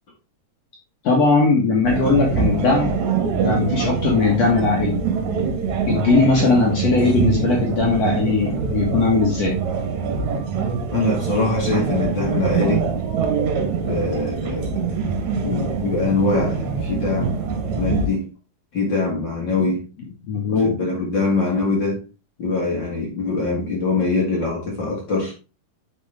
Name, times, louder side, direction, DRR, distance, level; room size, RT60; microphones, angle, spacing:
voice 1, 1.0-2.9 3.4-5.0 5.8-9.6 20.3-20.7, left 4 dB, 55° left, 2.5 m, -19 dB
sound 1, 1.8-18.1, right 5 dB, 65° right, 2.3 m, -24 dB
voice 2, 10.9-12.9 13.8-14.7 15.4-17.4 17.8-18.3 18.7-19.9 20.5-22.0 22.4-25.3, left 3 dB, 40° left, 2.4 m, -23 dB
8.1 x 5.3 x 3.5 m
omnidirectional pair, 3.8 m